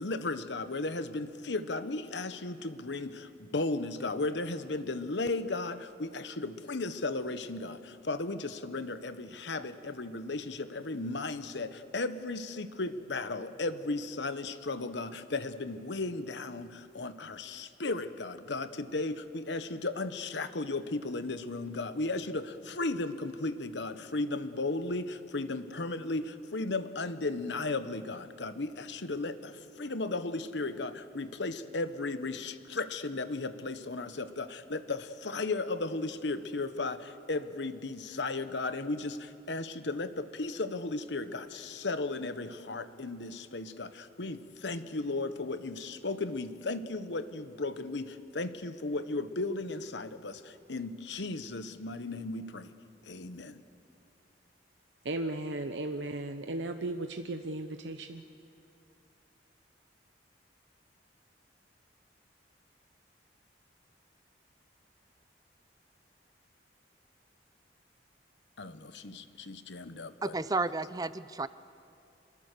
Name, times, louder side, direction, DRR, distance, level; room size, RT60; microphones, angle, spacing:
voice 1, 0.0-52.7 53.0-53.6 68.6-70.3, left 2 dB, 75° left, 1.1 m, -35 dB
voice 2, 55.0-58.2, right 2 dB, 80° right, 0.8 m, -36 dB
voice 3, 70.2-71.5, right 3 dB, 20° right, 0.5 m, -32 dB
27.0 x 21.5 x 6.8 m
head